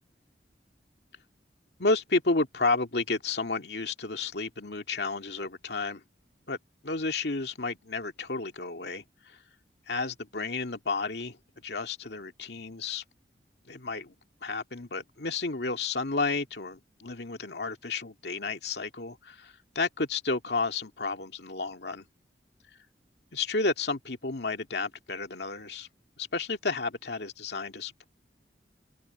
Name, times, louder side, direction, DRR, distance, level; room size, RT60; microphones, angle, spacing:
voice 1, 1.8-6.0 6.5-6.6 6.8-9.4 9.9-11.4 11.6-13.0 13.7-14.1 14.4-22.1 23.3-25.9 26.2-28.1, left 3 dB, 75° left, 2.1 m, -31 dB
open air
head